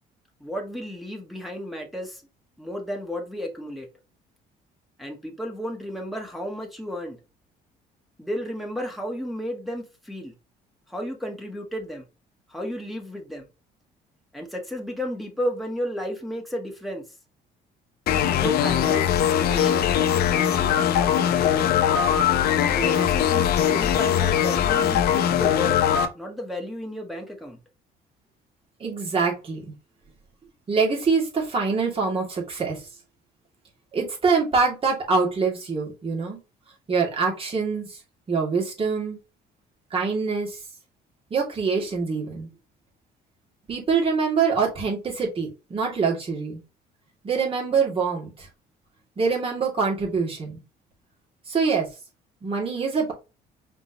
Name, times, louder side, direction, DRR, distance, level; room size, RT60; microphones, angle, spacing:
voice 1, 0.4-2.2 2.6-3.9 5.0-7.2 8.2-10.3 10.9-12.0 12.5-13.5 14.3-17.0 18.4-19.9 20.3-21.7 22.6-25.8 26.1-27.6, equal, ahead, 0 dB, 1.6 m, -33 dB
sound 1, 18.1-26.1, left 9 dB, 65° left, 0.8 m, -21 dB
voice 2, 28.8-29.6 30.7-32.9 33.9-36.4 36.9-38.0 38.3-39.2 39.9-40.6 41.3-42.5 43.7-46.6 47.2-48.5 49.2-50.6 51.5-51.9 52.4-53.1, right 5 dB, 35° right, -1 dB, 2.4 m, -24 dB
5.1 x 3.6 x 2.9 m, 0.28 s
cardioid pair, 110°, 17 cm